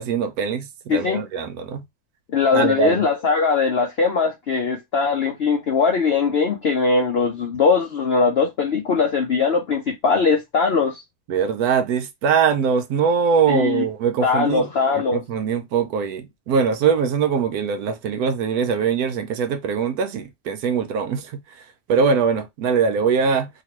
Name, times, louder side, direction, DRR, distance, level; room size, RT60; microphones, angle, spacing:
voice 1, 0.0-1.8 2.5-3.0 11.3-14.7 14.9-21.4 21.9-23.5, right 6 dB, 70° right, 1.0 m, -22 dB
voice 2, 2.3-11.0 13.5-13.8 14.2-15.2, left 5 dB, 65° left, 0.6 m, -20 dB
2.9 x 2.9 x 2.9 m
omnidirectional pair, 1.8 m